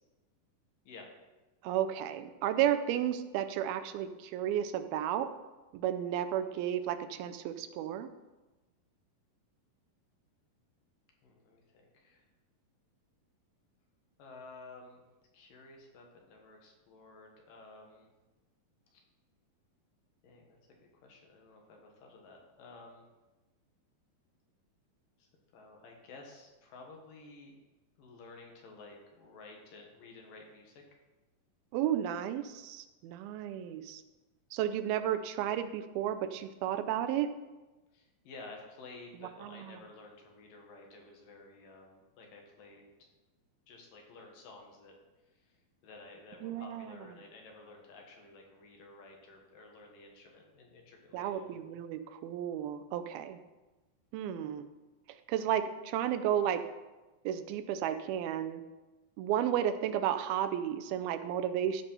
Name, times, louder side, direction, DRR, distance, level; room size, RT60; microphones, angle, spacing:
voice 1, 1.6-5.3 5.7-8.1 31.7-34.0 34.5-37.3 39.4-39.8 46.4-47.0 51.1-53.4 54.1-54.7 55.3-56.6 57.3-58.6 59.2-61.8, right 10 dB, 90° right, 10 dB, 2.6 m, -33 dB
voice 2, 11.2-12.2 14.2-15.0 15.3-18.1 18.9-19.0 20.2-20.6 20.9-23.0 25.2-25.3 25.5-27.5 28.0-30.8 37.9-42.9 43.7-44.9 45.3-45.6 45.8-51.5, left 3 dB, 70° left, 1 dB, 3.1 m, -53 dB
14.0 x 5.3 x 5.5 m, 1.1 s
omnidirectional pair, 4.2 m